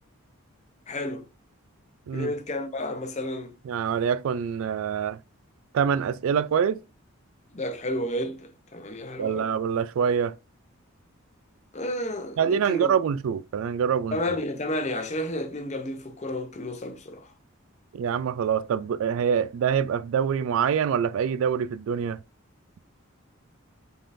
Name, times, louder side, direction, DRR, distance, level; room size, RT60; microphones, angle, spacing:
voice 1, 0.9-1.3 2.1-3.5 7.5-9.5 11.7-12.9 14.1-17.3, left 1 dB, 30° left, 0.6 m, -31 dB
voice 2, 3.7-5.2 5.7-6.8 9.2-10.4 12.4-14.2 17.9-22.2, right 7 dB, 70° right, 0.3 m, -25 dB
5.3 x 3.7 x 2.5 m
head